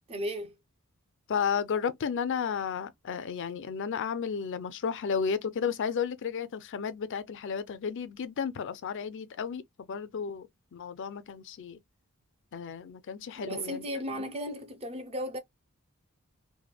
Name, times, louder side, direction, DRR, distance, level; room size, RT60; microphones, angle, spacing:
voice 1, 0.1-0.6 13.3-15.4, equal, 25° right, 0.7 m, -35 dB
voice 2, 1.3-11.8 12.5-13.8, left 6 dB, 55° left, 0.4 m, -33 dB
3.4 x 2.2 x 2.2 m
head